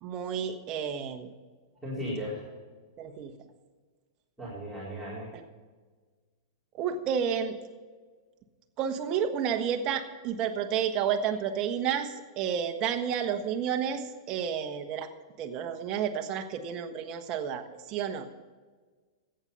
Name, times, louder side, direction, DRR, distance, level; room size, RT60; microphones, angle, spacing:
voice 1, 0.0-1.3 3.0-3.3 5.3-5.4 6.8-7.6 8.8-15.1 15.4-18.3, right 8 dB, 35° right, 6 dB, 1.4 m, -31 dB
voice 2, 1.8-2.4 4.4-5.3, equal, ahead, -10 dB, 4.3 m, -36 dB
14.0 x 9.1 x 5.6 m, 1.4 s
hypercardioid pair, 130°, 2 cm